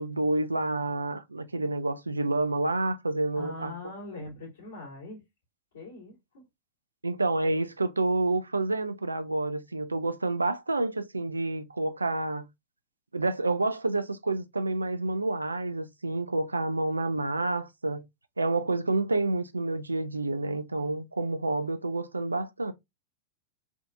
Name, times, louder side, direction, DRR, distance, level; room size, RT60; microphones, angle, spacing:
voice 1, 0.0-3.7 7.0-12.4 13.1-18.0 18.4-22.7, right 2 dB, 80° right, 0.3 m, -29 dB
voice 2, 3.3-5.2 5.7-6.4, left 2 dB, 65° left, 1.7 m, -42 dB
3.4 x 2.4 x 2.5 m
figure-of-eight pair, 90°, 0 cm